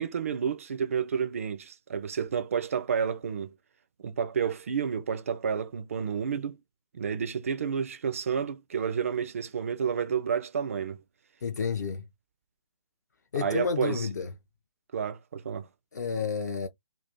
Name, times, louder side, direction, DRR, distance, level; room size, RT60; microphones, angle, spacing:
voice 1, 0.0-3.5 4.0-6.6 6.9-11.0 13.4-14.1 14.9-15.7, right 7 dB, 30° right, 0.3 m, -30 dB
voice 2, 11.4-12.0 13.3-14.3 15.9-16.7, left 5 dB, 35° left, 0.4 m, -30 dB
2.6 x 2.3 x 3.3 m
figure-of-eight pair, 145°, 16 cm